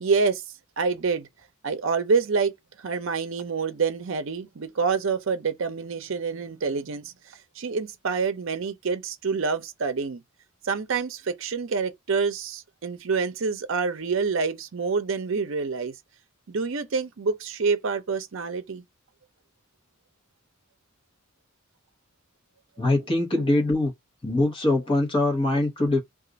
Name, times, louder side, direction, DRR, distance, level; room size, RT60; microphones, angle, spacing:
voice 1, 0.0-0.4 0.8-1.3 1.6-7.1 7.6-10.2 10.6-15.9 16.5-18.8, right 5 dB, 65° right, 0.6 m, -27 dB
voice 2, 22.8-23.9 24.2-26.0, left 2 dB, 25° left, 1.1 m, -23 dB
2.5 x 2.4 x 3.9 m
head